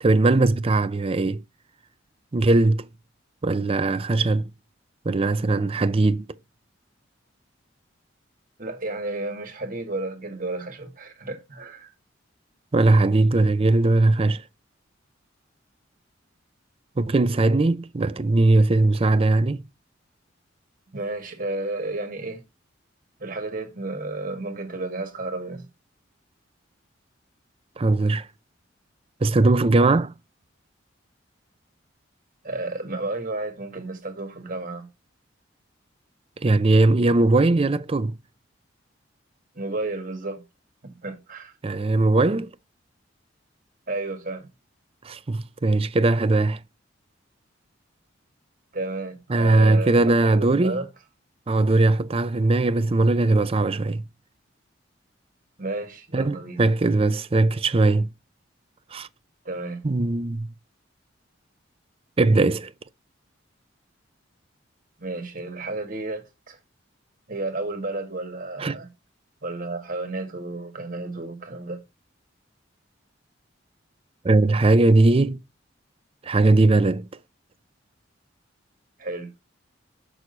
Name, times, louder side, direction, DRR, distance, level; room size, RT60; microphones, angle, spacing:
voice 1, 0.0-1.4 2.3-2.9 3.4-4.5 5.1-6.3 12.7-14.4 17.0-19.6 27.8-28.3 29.2-30.1 36.4-38.1 41.6-42.5 45.0-46.6 49.3-50.8 51.5-54.0 56.1-58.1 58.9-59.1 59.8-60.5 62.2-62.7 68.6-68.8 74.2-75.4 76.2-77.1, right 2 dB, 30° right, 0.5 m, -20 dB
voice 2, 8.6-11.9 20.9-22.4 23.2-25.6 32.4-34.9 39.5-40.4 40.8-41.5 43.9-44.5 48.7-50.9 55.6-56.6 59.5-59.8 65.0-66.6 67.3-68.9 69.4-71.8 79.0-79.3, right 2 dB, 45° right, 2.0 m, -32 dB
6.4 x 6.2 x 4.1 m
head